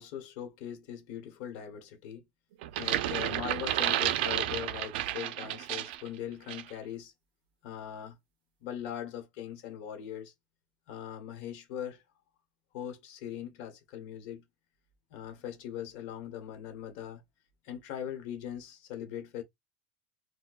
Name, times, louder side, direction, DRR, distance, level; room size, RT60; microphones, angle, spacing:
voice 1, 0.0-2.2 2.8-7.1 7.6-8.2 8.6-10.3 10.9-12.0 12.7-14.4 15.1-17.2 17.6-19.4, left 10 dB, 60° left, 1.2 m, -40 dB
sound 1, 2.6-6.1 6.5-6.7, right 13 dB, 90° right, 0.4 m, -31 dB
4.3 x 2.2 x 2.3 m
cardioid pair, 170°, 5 cm